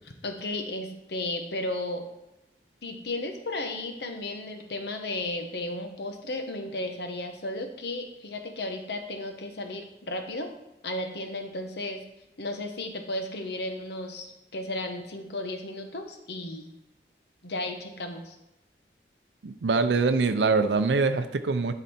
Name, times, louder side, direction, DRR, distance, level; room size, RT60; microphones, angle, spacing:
voice 1, 0.2-2.0 2.8-10.5 10.8-12.0 12.4-16.7 17.4-18.3, left 2 dB, 70° left, 5 dB, 1.0 m, -34 dB
voice 2, 19.4-21.7, right 4 dB, 85° right, 9 dB, 0.5 m, -24 dB
11.0 x 4.1 x 4.3 m, 0.92 s
head